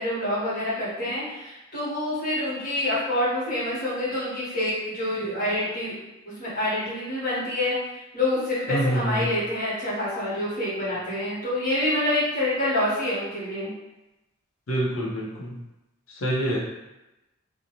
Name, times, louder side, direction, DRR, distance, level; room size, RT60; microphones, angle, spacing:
voice 1, 0.0-5.9 6.4-7.8 8.1-13.7, left 1 dB, 45° left, -9 dB, 1.2 m, -27 dB
voice 2, 8.7-9.3 14.7-15.5 16.2-16.6, right 1 dB, 85° left, -4 dB, 0.7 m, -26 dB
2.6 x 2.2 x 2.9 m, 0.97 s
head